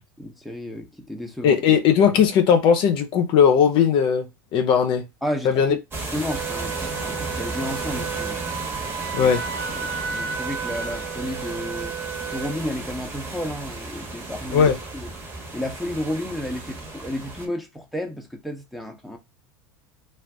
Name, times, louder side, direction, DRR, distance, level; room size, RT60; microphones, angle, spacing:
voice 1, 0.2-1.6 5.2-5.8 6.1-8.4 9.1-9.3 9.7-11.9 12.3-14.7 14.9-15.1 15.5-19.2, left 1 dB, ahead, 0.7 m, -32 dB
voice 2, 1.4-5.0 5.4-5.7 9.1-9.5 14.5-14.8, left 7 dB, 50° left, 0.6 m, -18 dB
sound 1, 5.9-17.5, right 2 dB, 25° right, 1.1 m, -34 dB
Wind instrument woodwind instrument, 6.3-12.6, right 7 dB, 45° right, 0.6 m, -33 dB
2.4 x 2.3 x 3.4 m
hypercardioid pair, 85°, 11 cm